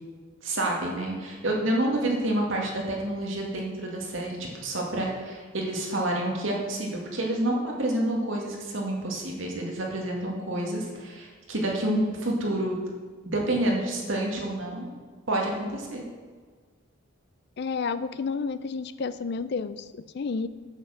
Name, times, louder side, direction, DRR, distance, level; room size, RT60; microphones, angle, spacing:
voice 1, 0.4-4.4 4.6-12.8 13.3-14.9 15.3-16.0, right 1 dB, 70° right, -2 dB, 2.2 m, -28 dB
voice 2, 17.6-20.5, left 5 dB, 50° left, 13 dB, 0.4 m, -31 dB
8.8 x 7.8 x 6.6 m, 1.5 s
head